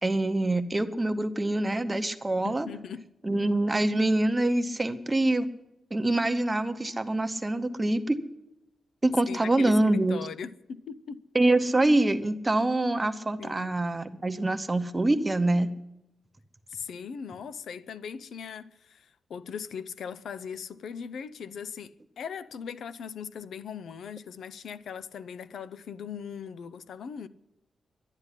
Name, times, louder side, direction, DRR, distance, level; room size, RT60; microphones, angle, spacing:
voice 1, 0.0-2.7 3.2-5.5 5.9-8.2 9.0-10.3 11.3-15.7, right 2 dB, 15° right, 0.9 m, -25 dB
voice 2, 2.4-3.4 9.3-11.2 13.4-13.7 16.7-27.3, left 7 dB, 80° left, 0.6 m, -39 dB
11.5 x 10.5 x 9.8 m
wide cardioid pair, 135°, 0 cm